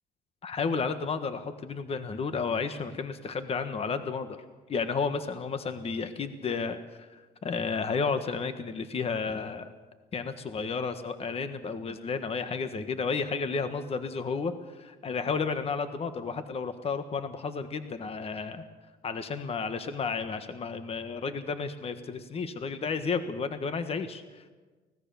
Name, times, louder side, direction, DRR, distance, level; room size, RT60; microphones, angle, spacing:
voice 1, 0.4-4.4 4.7-9.7 10.1-18.6 19.0-24.5, left 5 dB, 35° left, 9 dB, 1.5 m, -32 dB
25.0 x 18.0 x 7.1 m, 1.3 s
cardioid pair, 110°, 17 cm